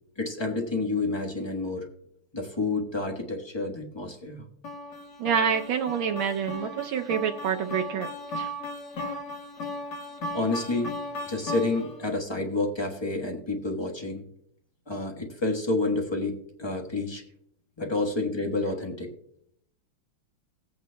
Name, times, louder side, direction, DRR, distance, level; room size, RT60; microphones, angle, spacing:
voice 1, 0.2-1.9 2.3-4.4 10.3-10.9 11.3-14.2 14.9-17.2 17.8-19.1, left 2 dB, 20° left, 3 dB, 0.9 m, -29 dB
sound 1, 4.6-12.1, left 1 dB, 55° left, 1.9 m, -36 dB
voice 2, 5.2-8.1 8.4-8.5, right 7 dB, 75° right, 4 dB, 1.4 m, -27 dB
19.0 x 8.5 x 2.2 m, 0.71 s
omnidirectional pair, 2.3 m